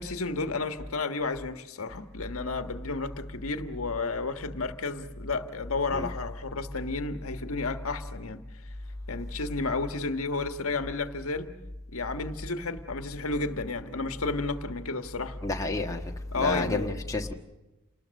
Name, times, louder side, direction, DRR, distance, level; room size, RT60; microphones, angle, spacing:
voice 1, 0.0-8.4 9.1-11.5 11.9-15.4 16.3-17.0, left 3 dB, 75° left, 7 dB, 1.5 m, -32 dB
voice 2, 15.4-16.0 16.4-17.3, left 2 dB, 15° left, 1 dB, 1.5 m, -30 dB
28.5 x 20.0 x 6.6 m, 1.0 s
head